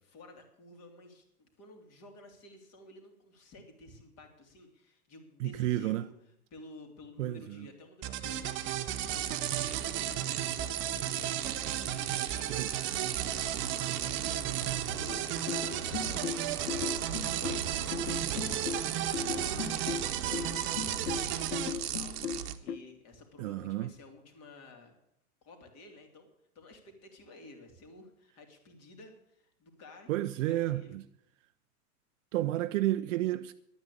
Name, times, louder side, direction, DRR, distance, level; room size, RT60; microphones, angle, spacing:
voice 1, 0.0-6.1 6.5-13.7 14.4-14.6 15.0-25.0 25.4-30.9, left 2 dB, 35° left, 3.2 m, -53 dB
voice 2, 5.4-6.1 7.2-7.7 12.5-13.0 23.4-23.9 30.1-31.0 32.3-33.5, right 15 dB, 55° right, 0.7 m, -31 dB
sound 1, 8.0-21.7, right 11 dB, 25° right, 0.9 m, -35 dB
sound 2, 8.9-22.6, right 10 dB, 85° right, 1.3 m, -37 dB
sound 3, 15.1-22.8, left 7 dB, 80° left, 1.3 m, -37 dB
11.5 x 9.3 x 8.5 m
hypercardioid pair, 135°, 45 cm